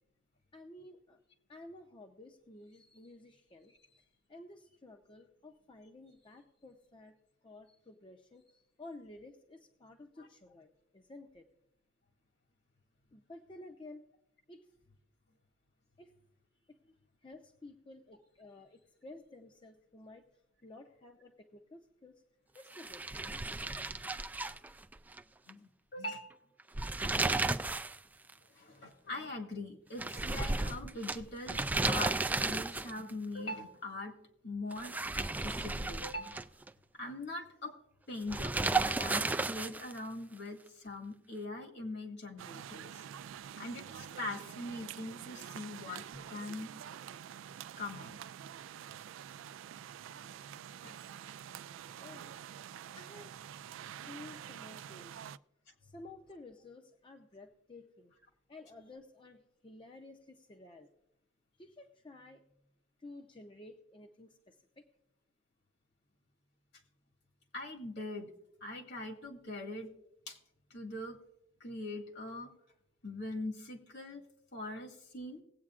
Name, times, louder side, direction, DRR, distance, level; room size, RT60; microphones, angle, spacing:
voice 1, 0.5-1.2 1.5-7.2 7.4-11.5 13.1-14.0 14.5-14.7 16.0-16.2 16.7-16.8 17.2-20.2 20.6-22.2 22.5-23.5 50.3-50.5 52.0-52.3 52.9-53.4 53.8-55.3 55.8-58.1 58.5-60.9 61.6-62.4 63.0-64.8, left 2 dB, 25° left, 3 dB, 0.7 m, -53 dB
sound 1, 22.7-25.2 25.5-25.6 26.6-28.0 28.3-28.4 30.0-33.1 34.7-36.7 38.3-40.0, right 3 dB, 10° right, 0.3 m, -33 dB
voice 2, 25.5-26.3 28.5-34.1 34.4-36.4 36.9-37.7 38.1-43.0 43.6-46.7 47.8-48.2 50.8-50.9 67.5-68.3 68.6-69.9 70.3-70.4 70.7-71.2 71.6-72.5 73.0-74.2 74.5-75.4, left 2 dB, 60° left, 3 dB, 1.9 m, -42 dB
sound 2, 42.4-55.4, right 9 dB, 90° right, 0.3 m, -47 dB
19.5 x 8.5 x 2.5 m, 0.82 s
head